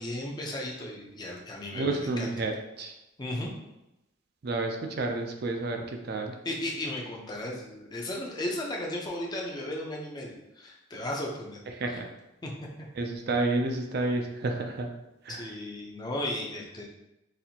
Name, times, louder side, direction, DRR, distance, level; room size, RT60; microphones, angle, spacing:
voice 1, 0.0-2.3 3.2-3.5 6.4-11.6 11.9-12.0 12.4-12.5 15.3-16.8, left 1 dB, 20° left, -1 dB, 0.5 m, -35 dB
voice 2, 1.7-2.9 4.4-6.3 11.8-12.0 13.0-14.9 15.3-15.4, right 2 dB, 50° right, 3 dB, 0.4 m, -30 dB
4.1 x 2.5 x 2.8 m, 0.91 s
head